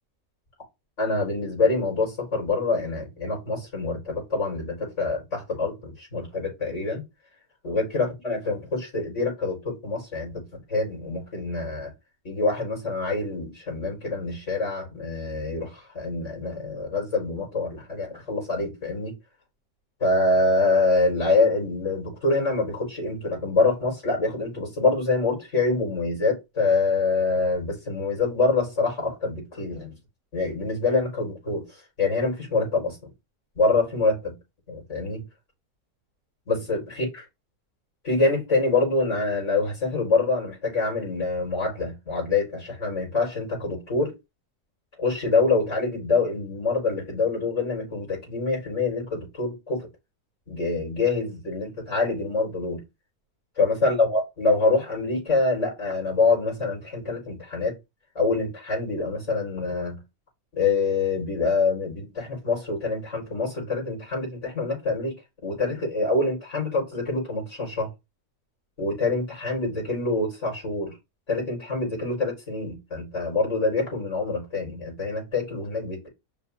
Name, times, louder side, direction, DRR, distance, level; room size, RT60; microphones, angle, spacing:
voice 1, 1.0-7.0 7.6-11.9 12.2-19.1 20.0-29.9 30.3-31.7 32.0-33.1 33.6-34.3 34.7-35.2 36.5-37.1 38.0-44.2 45.0-49.9 50.5-52.8 53.6-57.8 58.2-60.0 60.5-65.1 65.4-67.9 68.8-71.0 71.3-76.1, left 3 dB, 50° left, 5.5 m, -25 dB
7.1 x 5.8 x 2.8 m
omnidirectional pair, 1.6 m